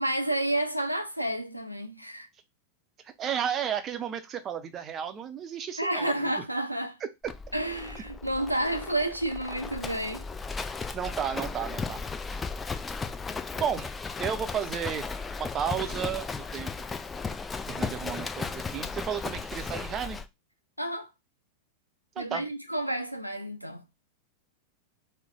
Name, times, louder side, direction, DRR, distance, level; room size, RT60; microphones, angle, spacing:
voice 1, 0.0-2.3 5.8-7.0 7.5-10.3 20.8-21.1 22.2-23.9, right 1 dB, 90° right, 0.5 m, -30 dB
voice 2, 3.2-6.3 10.9-12.0 13.6-13.9 14.2-15.1 15.4-16.3 16.5-16.7 17.7-20.2 22.2-22.4, right 8 dB, 30° right, 0.6 m, -32 dB
Livestock farm animals working animals, 7.2-20.3, left 4 dB, 15° left, 0.3 m, -36 dB
3.1 x 2.1 x 3.7 m
figure-of-eight pair, 90°, 0 cm